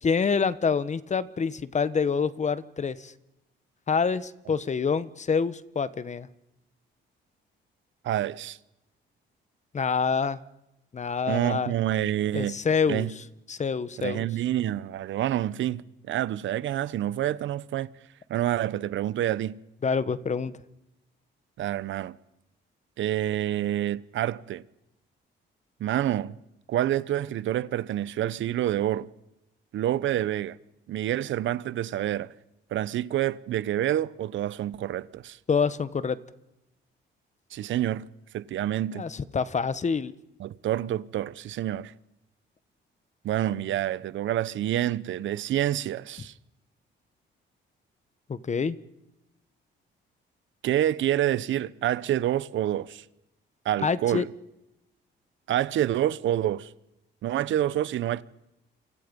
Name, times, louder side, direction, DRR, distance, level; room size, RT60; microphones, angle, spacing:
voice 1, 0.0-3.1 3.9-6.3 9.7-10.4 10.9-11.7 12.3-13.1 13.5-14.3 19.8-20.5 35.5-36.2 38.9-40.1 48.3-48.8 53.8-54.2, left 5 dB, 35° left, 1.3 m, -26 dB
voice 2, 8.0-8.6 11.3-12.6 12.9-13.1 14.0-17.9 18.3-19.6 21.6-22.2 23.0-24.6 25.8-26.4 26.7-29.1 29.7-30.6 30.9-32.3 32.7-35.4 37.5-38.1 38.3-39.0 40.4-41.9 43.2-46.3 50.6-53.0 53.6-54.3 55.5-56.7 57.2-58.2, right 12 dB, 75° right, 0.9 m, -27 dB
29.0 x 26.0 x 5.4 m
cardioid pair, 90°, 20 cm